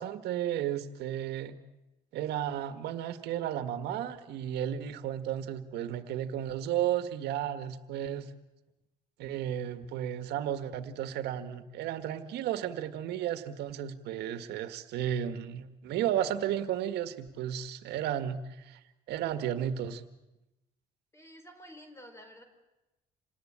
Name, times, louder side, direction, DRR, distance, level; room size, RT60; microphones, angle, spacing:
voice 1, 0.0-1.6 2.1-8.3 9.2-18.8 19.1-20.0, right 10 dB, 80° right, 10 dB, 1.8 m, -33 dB
voice 2, 21.1-22.4, equal, 15° left, 7 dB, 4.0 m, -50 dB
27.5 x 18.5 x 8.8 m, 0.99 s
cardioid pair, 110°, 17 cm